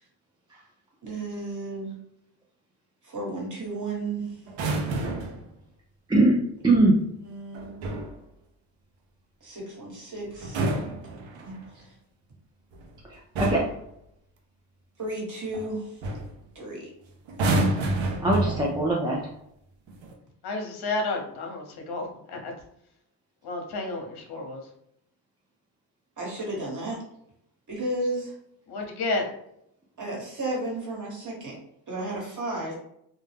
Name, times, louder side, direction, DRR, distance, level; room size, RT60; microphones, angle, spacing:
voice 1, 1.0-1.9 3.0-4.4 7.2-7.9 9.4-10.6 11.4-11.9 15.0-15.9 16.5-16.9 26.2-27.0 27.7-28.3 30.0-31.6 31.9-32.7, right 2 dB, 40° right, -2 dB, 1.3 m, -33 dB
sound 1, 4.5-5.5 7.5-8.2 10.3-11.7 12.7-13.0 13.4-13.8 15.5-15.7 16.0-16.3 17.3-19.0 19.9-20.1, right 2 dB, 75° right, 0.7 m, -28 dB
voice 2, 6.1-7.0 13.1-13.7 18.2-19.2, right 2 dB, 10° right, -3 dB, 0.4 m, -22 dB
voice 3, 20.4-22.5 23.4-24.7 28.7-29.3, left 2 dB, 55° left, 2 dB, 0.8 m, -31 dB
2.3 x 2.1 x 3.3 m, 0.75 s
supercardioid pair, 70°, 47 cm